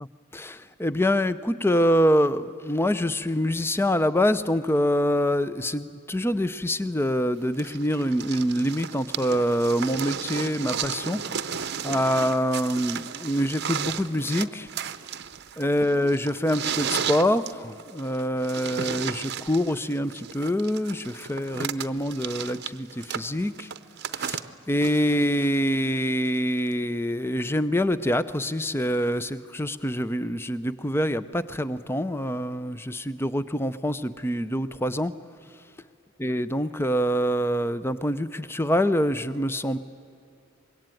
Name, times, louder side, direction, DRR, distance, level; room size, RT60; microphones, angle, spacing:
voice 1, 0.3-11.5 11.8-14.7 15.6-23.7 24.1-35.1 36.2-39.8, equal, 10° left, 14 dB, 0.6 m, -25 dB
sound 1, 7.6-25.7 26.7-26.8, right 7 dB, 50° right, 0.8 m, -34 dB
25.0 x 22.0 x 9.2 m, 2.5 s
head